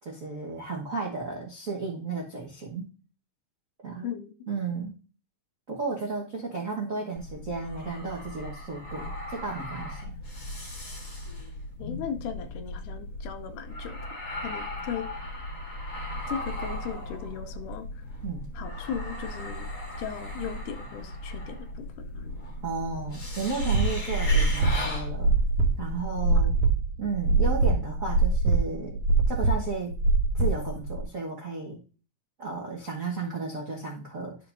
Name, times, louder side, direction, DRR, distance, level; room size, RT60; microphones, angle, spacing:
voice 1, 0.0-2.9 3.8-4.1 4.5-4.9 5.7-10.1 18.2-18.5 22.6-25.4 25.8-26.5 27.0-29.0 29.3-29.9 30.3-31.8 32.4-34.4, right 4 dB, 55° right, -3 dB, 0.8 m, -33 dB
voice 2, 4.0-4.3 11.8-14.0 14.4-15.1 16.3-18.0 18.5-19.7 20.0-22.3 26.3-26.5, left 8 dB, 80° left, 9 dB, 2.2 m, -37 dB
sound 1, 7.1-26.0, left 1 dB, 30° left, 1.9 m, -37 dB
sound 2, 23.6-31.0, right 3 dB, 70° right, 2.6 m, -24 dB
12.0 x 5.6 x 2.6 m, 0.36 s
omnidirectional pair, 3.7 m